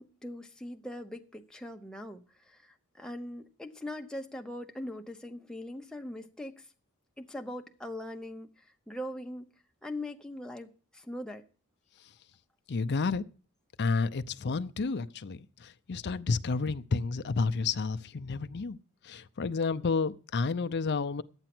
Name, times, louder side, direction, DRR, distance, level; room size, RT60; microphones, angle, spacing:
voice 1, 0.0-6.7 7.2-9.5 9.8-11.4, left 1 dB, 5° left, 0.8 m, -41 dB
voice 2, 12.7-13.2 13.8-18.8 19.0-21.2, left 4 dB, 50° left, 0.5 m, -30 dB
11.5 x 8.9 x 6.0 m
head